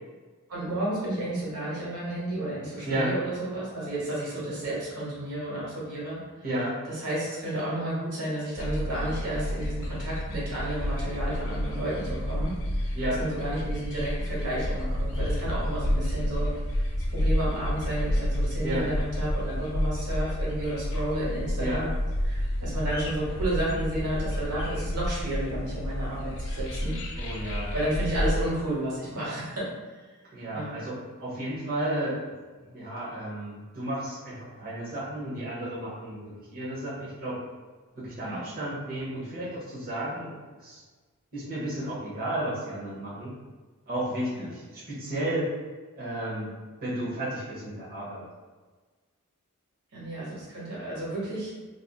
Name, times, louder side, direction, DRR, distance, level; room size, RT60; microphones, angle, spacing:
voice 1, 0.5-6.2 6.9-12.5 12.8-16.5 16.7-21.9 22.2-26.9 27.2-27.3 27.7-29.6 30.5-30.8 38.2-38.4 44.3-44.5 49.9-51.5, right 1 dB, 90° right, -7 dB, 1.2 m, -32 dB
voice 2, 6.4-6.8 12.9-13.2 18.6-18.9 21.6-21.8 27.2-27.7 28.2-28.3 30.3-32.2 32.7-37.4 37.9-40.3 40.6-40.8 41.3-43.3 43.9-45.5 46.0-46.5 46.8-48.2, right 1 dB, 40° right, -8 dB, 1.0 m, -32 dB
sound 1, 8.6-28.5, equal, 60° left, 0.5 m, -30 dB
3.3 x 2.5 x 2.4 m, 1.4 s
head